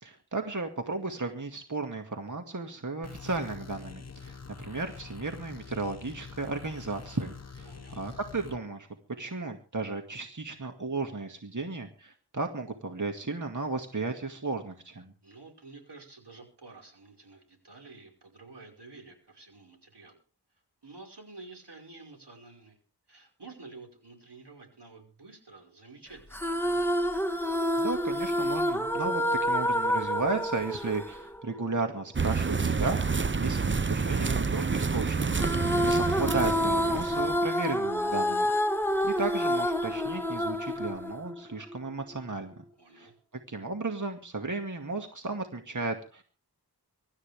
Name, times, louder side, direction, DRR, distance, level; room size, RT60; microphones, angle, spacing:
voice 1, 0.0-8.9 9.2-15.1 27.8-33.0 33.4-38.5 39.0-42.6 42.9-43.1 43.5-46.2, right 3 dB, 45° right, 4 dB, 2.2 m, -34 dB
sound 1, 3.0-8.6, left 5 dB, 40° left, 1.1 m, -45 dB
voice 2, 7.7-8.1 15.2-20.2 20.8-22.8 23.1-26.9 42.8-43.2, right 3 dB, 85° right, 1 dB, 5.3 m, -50 dB
sound 2, 26.3-31.8 35.3-41.7, equal, 5° left, 1.5 m, -28 dB
sound 3, 32.1-37.4, right 4 dB, 30° right, 0.7 m, -28 dB
24.5 x 13.0 x 3.5 m, 0.37 s
wide cardioid pair, 50°, 40 cm